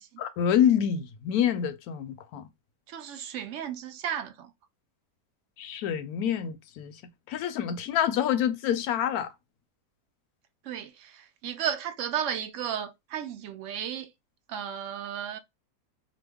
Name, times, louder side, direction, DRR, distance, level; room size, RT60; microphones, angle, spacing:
voice 1, 0.2-2.5 5.6-6.9 7.3-9.3, left 9 dB, 80° left, 1.0 m, -27 dB
voice 2, 2.9-4.5 10.6-14.1 14.5-15.4, right 9 dB, 70° right, 0.8 m, -34 dB
2.9 x 2.2 x 3.3 m
omnidirectional pair, 1.6 m